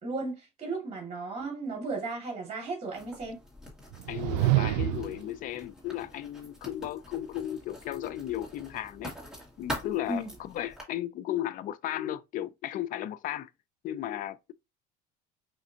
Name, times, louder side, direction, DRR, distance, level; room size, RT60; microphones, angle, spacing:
voice 1, 0.0-3.4 10.1-10.3, right 3 dB, 35° right, 2.3 m, -35 dB
Writing, 2.9-10.8, equal, 5° right, 1.9 m, -44 dB
sound 1, 3.9-5.3, right 16 dB, 80° right, 0.4 m, -27 dB
voice 2, 4.1-9.1 9.6-13.5 13.8-14.5, left 12 dB, 50° left, 0.4 m, -35 dB
4.9 x 2.6 x 2.8 m
cardioid pair, 120°, 18 cm